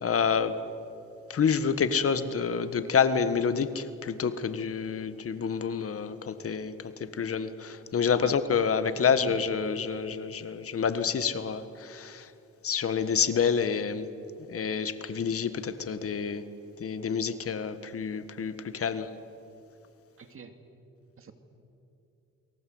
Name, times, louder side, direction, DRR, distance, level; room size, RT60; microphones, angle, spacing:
voice 1, 0.0-0.6 1.3-12.3 12.6-14.1 14.5-16.4 16.8-19.1, left 6 dB, 50° left, 11 dB, 1.6 m, -28 dB
voice 2, 9.0-9.4 20.2-20.5 21.2-21.3, right 6 dB, 45° right, 7 dB, 2.5 m, -44 dB
29.0 x 23.0 x 8.0 m, 2.7 s
cardioid pair, 90°, 30 cm